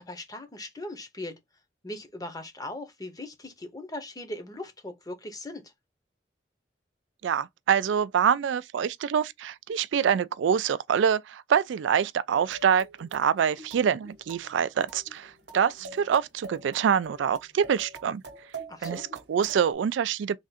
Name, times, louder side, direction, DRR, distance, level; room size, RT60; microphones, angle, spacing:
voice 1, 0.0-1.3 1.8-5.6 18.7-19.1, left 1 dB, 20° left, 0.8 m, -39 dB
voice 2, 7.2-18.2 18.8-20.4, right 7 dB, 80° right, 0.3 m, -25 dB
sound 1, 12.3-19.7, right 3 dB, 65° right, 0.9 m, -45 dB
3.5 x 2.5 x 4.0 m
head